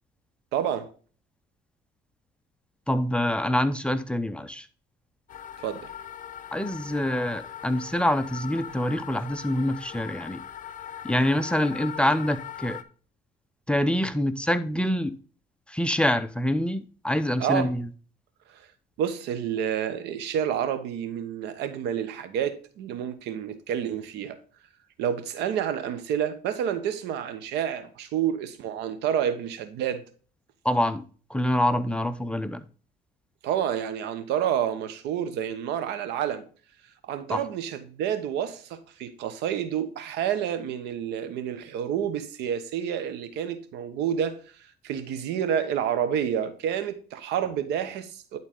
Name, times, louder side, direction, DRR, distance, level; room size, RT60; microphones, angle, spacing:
voice 1, 0.5-0.9 5.6-5.9 17.4-17.7 18.5-18.7 19.0-24.4 25.0-30.0 33.4-36.5 37.0-48.4, right 9 dB, 85° right, 1.1 m, -29 dB
voice 2, 2.9-4.7 6.5-10.4 11.0-12.8 13.7-15.1 15.7-17.9 30.6-31.0 31.3-32.6 37.3-37.4, left 1 dB, 5° left, 0.6 m, -25 dB
sound 1, 5.3-12.8, left 9 dB, 50° left, 0.6 m, -40 dB
11.0 x 4.0 x 3.6 m
cardioid pair, 95°, 17 cm